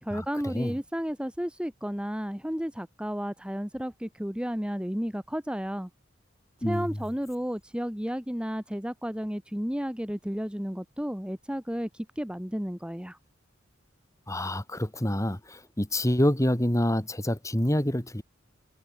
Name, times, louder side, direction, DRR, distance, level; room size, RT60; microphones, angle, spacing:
voice 1, 0.0-5.9 6.6-13.2, equal, 5° right, 1.5 m, -32 dB
voice 2, 14.3-18.2, left 1 dB, 15° left, 2.1 m, -27 dB
head